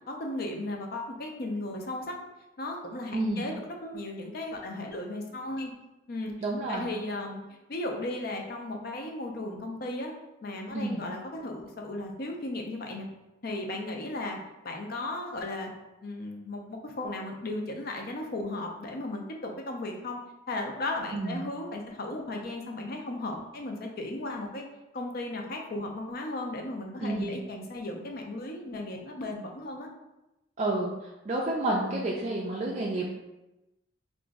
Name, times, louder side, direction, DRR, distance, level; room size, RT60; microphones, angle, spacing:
voice 1, 0.1-2.2 2.6-5.7 6.1-6.3 6.7-7.4 7.7-10.1 10.4-13.1 13.4-14.4 14.6-15.7 16.0-20.2 20.5-24.6 24.9-29.9, left 2 dB, 50° left, 2 dB, 0.5 m, -35 dB
voice 2, 3.1-3.5 6.4-6.9 10.7-11.0 21.1-21.5 27.0-27.3 30.6-30.9 31.3-33.1, right 2 dB, 35° right, -3 dB, 0.3 m, -29 dB
2.9 x 2.5 x 3.5 m, 0.98 s
head